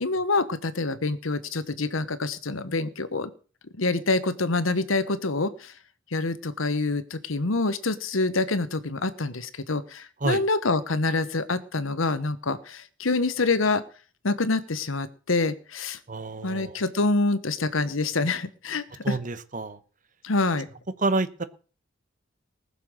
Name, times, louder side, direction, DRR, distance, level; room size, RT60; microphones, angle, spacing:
voice 1, 0.0-3.3 3.8-5.7 6.1-13.8 14.2-16.0 16.4-19.2 20.2-20.7, left 3 dB, 90° left, 13 dB, 1.2 m, -26 dB
voice 2, 16.1-16.8 19.0-19.8 21.0-21.4, right 3 dB, 40° right, 13 dB, 1.1 m, -28 dB
19.5 x 6.9 x 6.5 m, 0.40 s
head